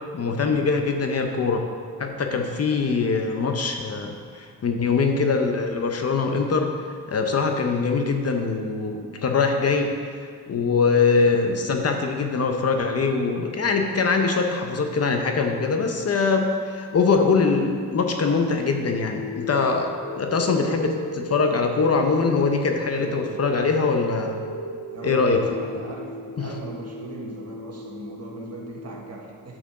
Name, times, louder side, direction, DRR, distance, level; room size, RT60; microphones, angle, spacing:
voice 1, 0.1-1.6 2.0-6.7 7.1-9.9 10.5-24.4 25.0-25.4 26.4-26.5, left 4 dB, 45° left, 4 dB, 0.8 m, -23 dB
sound 1, 19.0-29.0, left 1 dB, 65° left, 1.3 m, -36 dB
voice 2, 22.9-23.5 24.9-29.6, right 2 dB, 45° right, -1 dB, 1.6 m, -39 dB
8.3 x 6.2 x 4.9 m, 2.1 s
cardioid pair, 105°, 35 cm